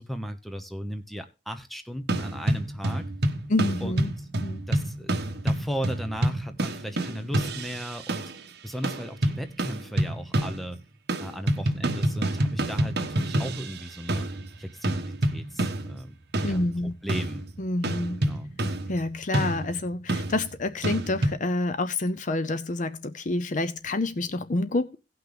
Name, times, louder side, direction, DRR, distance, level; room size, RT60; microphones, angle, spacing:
voice 1, 0.0-3.0 3.8-4.3 4.7-5.2 5.4-8.3 8.6-10.8 11.2-14.3 14.6-16.1 16.4-17.5 18.2-18.5, equal, ahead, 1.0 m, -36 dB
sound 1, 2.1-8.5 8.8-10.8 11.1-21.4, right 1 dB, 65° right, 1.3 m, -28 dB
voice 2, 3.5-4.1 4.4-4.6 16.4-16.9 17.6-18.2 18.9-25.0, left 2 dB, 45° left, 0.6 m, -28 dB
17.5 x 5.9 x 3.4 m
head